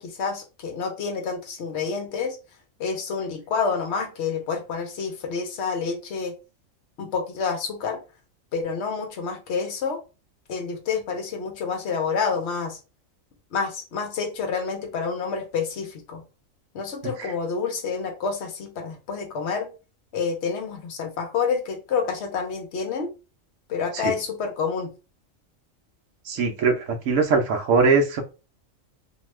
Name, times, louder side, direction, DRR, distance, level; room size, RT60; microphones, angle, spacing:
voice 1, 0.0-2.4 2.8-6.3 7.0-8.0 8.5-10.0 10.5-12.8 13.5-16.2 16.7-19.7 20.1-23.1 23.7-24.9, left 5 dB, 60° left, 4 dB, 0.9 m, -28 dB
voice 2, 26.3-28.2, right 4 dB, 70° right, 3 dB, 1.0 m, -21 dB
2.8 x 2.3 x 3.1 m, 0.31 s
omnidirectional pair, 1.4 m